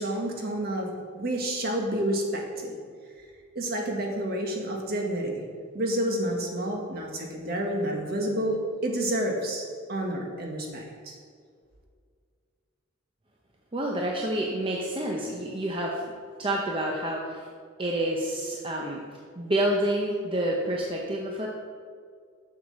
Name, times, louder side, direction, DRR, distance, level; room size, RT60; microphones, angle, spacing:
voice 1, 0.0-2.8 3.5-5.4 5.7-11.2, right 1 dB, 50° right, 1 dB, 1.5 m, -29 dB
voice 2, 13.7-16.0 16.4-17.4 17.8-19.0 19.4-21.5, right 1 dB, 25° right, -1 dB, 0.8 m, -28 dB
7.2 x 6.5 x 6.4 m, 2.1 s
head